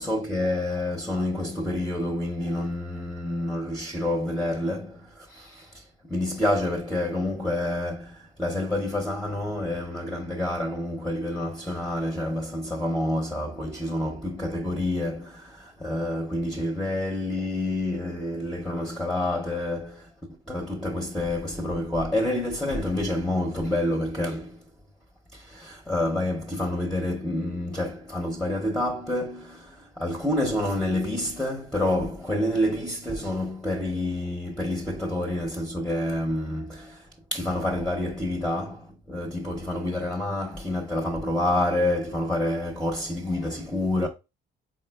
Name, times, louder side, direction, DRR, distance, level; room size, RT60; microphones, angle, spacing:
voice 1, 0.0-20.1 20.4-24.6 25.3-44.1, left 1 dB, 5° left, 0.7 m, -28 dB
4.3 x 3.9 x 2.3 m
cardioid pair, 90°, 20 cm